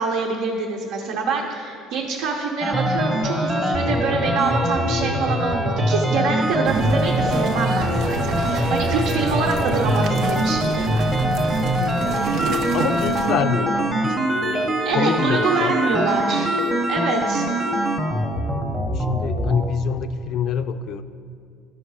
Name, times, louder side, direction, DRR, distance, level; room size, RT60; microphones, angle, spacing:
voice 1, 0.0-11.1 14.8-16.5 16.9-17.5, right 4 dB, 75° right, 0 dB, 0.9 m, -25 dB
sound 1, 2.6-19.7, equal, 15° right, 0.9 m, -23 dB
sound 2, 6.6-13.3, right 5 dB, 50° right, 0.5 m, -29 dB
voice 2, 12.7-15.8 18.9-21.0, left 7 dB, 55° left, 10 dB, 0.4 m, -26 dB
12.0 x 5.9 x 4.8 m, 2.3 s
cardioid pair, 140°, 0 cm